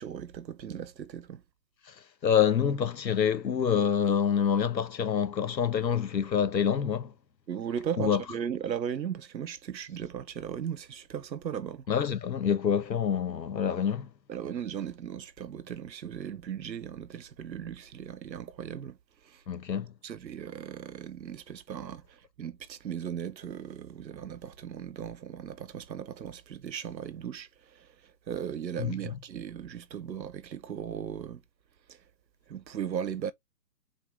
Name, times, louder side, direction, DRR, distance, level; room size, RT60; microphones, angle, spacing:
voice 1, 0.0-1.4 7.5-11.8 14.3-19.0 19.3-19.4 20.0-22.0 22.4-27.5 27.8-27.9 28.3-31.4 32.5-33.3, right 8 dB, 85° right, 0.9 m, -37 dB
voice 2, 1.8-7.1 8.0-8.2 11.9-14.1 19.5-19.9 28.8-29.2, left 8 dB, 85° left, 1.3 m, -27 dB
4.2 x 3.8 x 3.2 m
hypercardioid pair, 165°, 50 cm